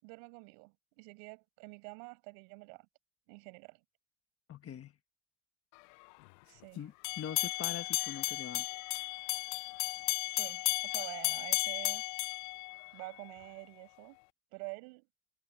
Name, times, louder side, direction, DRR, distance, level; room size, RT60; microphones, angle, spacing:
voice 1, 0.0-2.9 3.3-3.8 6.5-6.8 10.3-12.2 12.9-14.2 14.5-15.1, right 38 dB, 75° right, 7.3 m, -47 dB
voice 2, 4.5-4.9 6.5-8.7, left 9 dB, 30° left, 1.6 m, -43 dB
sound 1, 7.0-13.3, left 28 dB, 75° left, 0.6 m, -34 dB
cardioid pair, 135°, 48 cm